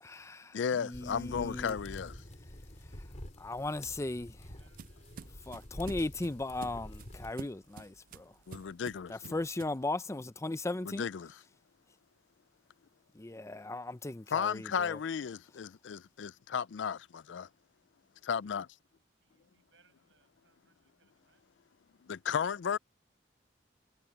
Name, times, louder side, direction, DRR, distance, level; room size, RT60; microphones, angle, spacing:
voice 1, 0.0-1.8 3.4-4.3 5.5-8.3 9.1-11.1 13.1-15.0, left 2 dB, 15° left, 0.5 m, -37 dB
voice 2, 0.5-2.2 8.5-9.3 10.8-11.4 14.3-17.5 18.2-18.7 22.0-22.8, left 7 dB, 70° left, 0.4 m, -34 dB
sound 1, 0.9-7.3, left 1 dB, 40° left, 3.1 m, -48 dB
sound 2, 3.8-9.8, right 5 dB, 50° right, 0.4 m, -50 dB
voice 3, 4.0-5.4 19.2-21.4, right 4 dB, 85° right, 7.0 m, -72 dB
head